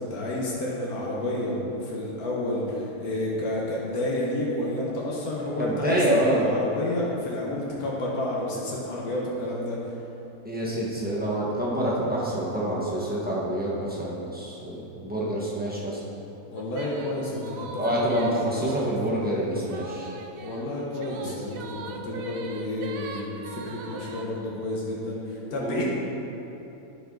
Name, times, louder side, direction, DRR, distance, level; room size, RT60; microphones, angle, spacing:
voice 1, 0.0-9.9 16.5-18.5 20.4-25.8, left 1 dB, 80° left, -4 dB, 1.5 m, -30 dB
voice 2, 5.6-6.7 10.4-16.0 17.8-20.1 25.5-25.8, right 1 dB, 5° right, -7 dB, 1.3 m, -27 dB
sound 1, 16.6-19.1 19.7-24.3, right 4 dB, 75° right, 1.0 m, -41 dB
11.5 x 4.7 x 3.8 m, 3.0 s
omnidirectional pair, 1.5 m